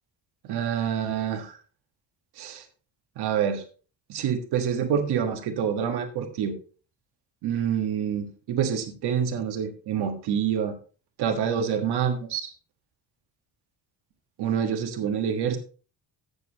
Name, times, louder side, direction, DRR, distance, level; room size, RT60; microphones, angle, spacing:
voice 1, 0.4-1.6 2.4-2.6 3.2-3.6 4.1-6.6 7.4-10.8 11.2-12.5 14.4-15.6, right 8 dB, 70° right, 6 dB, 1.6 m, -27 dB
15.0 x 6.8 x 2.9 m, 0.38 s
cardioid pair, 130°, 41 cm